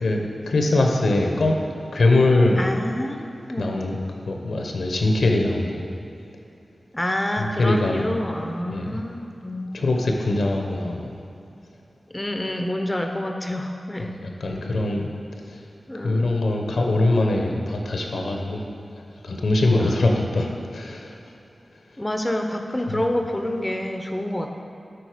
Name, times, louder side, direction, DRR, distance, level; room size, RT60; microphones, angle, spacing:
voice 1, 0.0-1.6 1.9-2.6 3.6-4.0 4.3-5.9 7.4-8.0 8.7-8.9 9.7-11.1 14.0-15.1 15.5-15.6 16.0-18.7 19.2-21.1 22.9-23.0, left 2 dB, 80° left, 1 dB, 0.8 m, -22 dB
voice 2, 2.6-3.8 6.9-9.8 12.1-14.1 15.9-16.3 19.8-20.0 22.0-24.5, left 1 dB, 20° left, 5 dB, 0.6 m, -28 dB
7.9 x 4.2 x 5.0 m, 2.8 s
cardioid pair, 45°, 0 cm